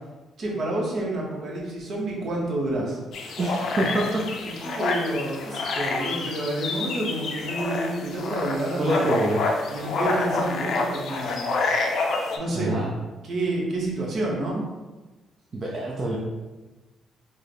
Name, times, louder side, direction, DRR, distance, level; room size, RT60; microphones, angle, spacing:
voice 1, 0.4-3.4 4.4-9.2 9.7-11.5 12.4-12.8 13.2-14.6, right 1 dB, 60° right, -2 dB, 0.9 m, -29 dB
sound 1, 3.1-12.4, left 3 dB, 65° left, 0.4 m, -28 dB
voice 2, 3.4-4.2 8.8-9.4 12.5-12.9 15.5-16.2, right 1 dB, 40° right, -3 dB, 0.5 m, -25 dB
3.6 x 2.1 x 3.4 m, 1.2 s
cardioid pair, 90°, 0 cm